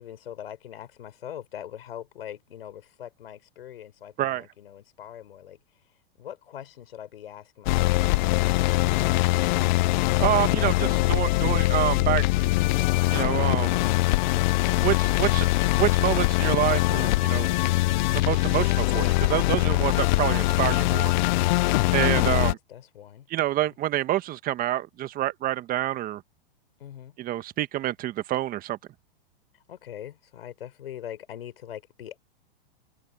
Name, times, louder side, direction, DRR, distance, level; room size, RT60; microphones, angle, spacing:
voice 1, 0.0-5.6 6.2-9.2 20.8-23.3 26.8-27.2 29.7-32.2, left 10 dB, 80° left, 4.5 m, -43 dB
sound 1, 7.7-22.5, left 19 dB, 50° left, 0.6 m, -22 dB
voice 2, 10.2-12.2 13.1-13.8 14.8-15.5 15.7-17.5 18.1-21.1 21.9-22.6 23.3-26.2 27.2-28.8, right 14 dB, 30° right, 1.6 m, -27 dB
hypercardioid pair, 125°, 29 cm